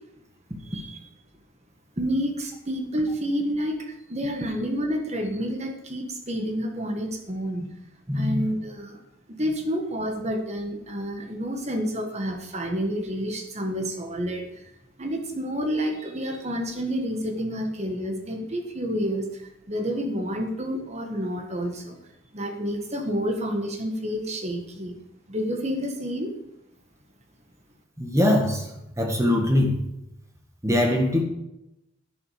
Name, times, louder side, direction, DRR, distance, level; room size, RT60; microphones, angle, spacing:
voice 1, 0.6-1.1 2.0-7.7 8.1-9.0 9.3-14.7 15.0-22.0 22.3-25.0 25.3-26.3, equal, 35° right, 4 dB, 1.6 m, -29 dB
voice 2, 8.1-8.5 28.0-28.7 29.0-29.8 30.6-31.2, left 1 dB, 15° right, 2 dB, 1.8 m, -22 dB
11.0 x 11.0 x 5.1 m, 0.87 s
head